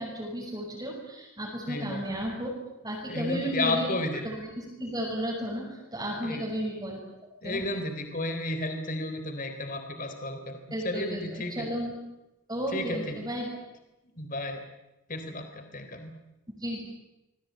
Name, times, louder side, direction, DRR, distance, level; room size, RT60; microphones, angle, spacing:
voice 1, 0.0-2.5 2.8-3.9 4.2-7.0 7.4-7.6 10.7-11.9 12.5-13.5 16.6-16.8, equal, 20° right, -4 dB, 6.2 m, -33 dB
voice 2, 1.7-2.0 3.1-4.2 6.2-6.4 7.4-11.7 12.7-13.2 14.2-14.6 15.1-16.1, left 2 dB, 40° left, 7 dB, 3.6 m, -32 dB
27.5 x 21.0 x 9.3 m, 0.97 s
head